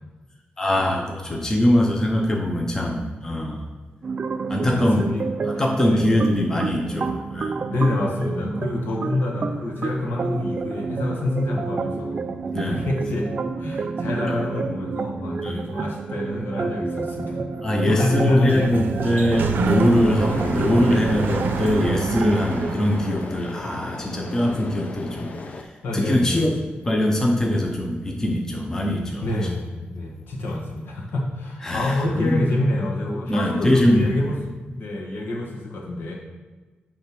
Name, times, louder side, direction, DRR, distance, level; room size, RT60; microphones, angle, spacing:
voice 1, 0.6-3.6 4.5-5.1 5.4-7.6 12.5-12.8 15.4-15.7 17.6-26.5 26.8-29.2 31.6-32.5 33.3-34.2, left 1 dB, 15° left, 0 dB, 0.8 m, -22 dB
sound 1, 4.0-22.7, right 4 dB, 35° right, 0.4 m, -29 dB
voice 2, 4.6-5.2 5.5-5.6 5.9-6.2 7.7-12.3 12.7-13.3 13.6-17.4 17.6-19.1 25.8-26.5 29.2-34.4 34.8-36.1, left 2 dB, 75° left, -2 dB, 1.7 m, -27 dB
Sliding door, 18.2-23.3, right 4 dB, 75° right, 0.6 m, -28 dB
sound 2, 19.8-25.6, left 3 dB, 45° left, 0.6 m, -36 dB
9.0 x 3.4 x 5.9 m, 1.3 s
wide cardioid pair, 170°, 4 cm